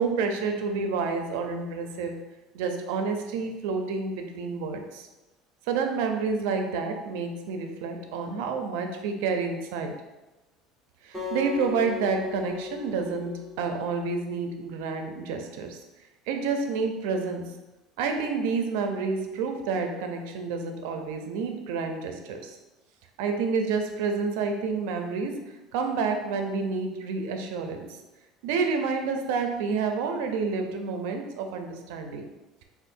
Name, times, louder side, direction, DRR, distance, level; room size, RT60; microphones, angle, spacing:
voice 1, 0.0-2.1 2.5-5.1 5.7-9.9 11.0-15.8 16.3-17.4 18.0-22.5 23.2-25.4 25.7-27.9 28.4-32.3, right 4 dB, 80° right, 4 dB, 0.6 m, -29 dB
Acoustic guitar, 11.1-14.4, left 6 dB, 10° left, 1.0 m, -37 dB
6.3 x 2.5 x 2.6 m, 1.1 s
cardioid pair, 175°, 0 cm